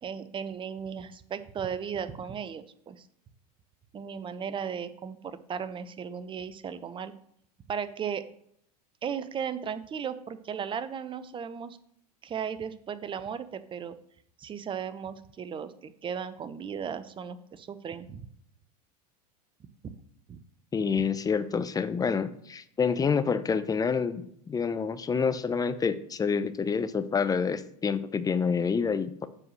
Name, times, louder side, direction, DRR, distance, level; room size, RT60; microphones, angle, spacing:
voice 1, 0.0-3.1 3.9-7.1 7.7-8.2 9.0-11.8 12.2-13.9 14.4-18.2 20.3-20.4, right 7 dB, 25° right, 13 dB, 0.8 m, -36 dB
voice 2, 20.7-29.3, left 6 dB, 20° left, 12 dB, 0.7 m, -28 dB
7.6 x 4.7 x 6.3 m, 0.69 s
hypercardioid pair, 100°, 21 cm